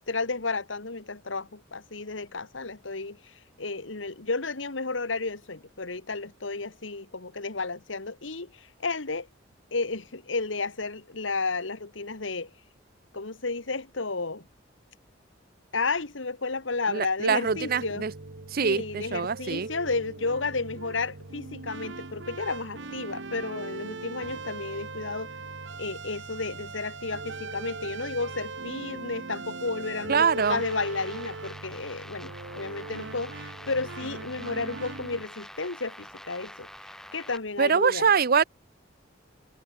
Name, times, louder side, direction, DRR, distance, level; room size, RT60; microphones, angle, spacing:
voice 1, 0.0-9.3 9.7-12.5 13.1-14.5 15.7-18.1 18.6-25.3 25.8-36.7 37.1-38.1, left 3 dB, 90° left, 1.9 m, -32 dB
voice 2, 16.9-18.1 18.5-19.7 30.1-30.6 37.6-38.4, right 6 dB, 50° right, 0.7 m, -24 dB
sound 1, 17.4-35.2, right 3 dB, 70° right, 1.4 m, -40 dB
sound 2, 30.4-37.4, equal, ahead, 3.4 m, -46 dB
head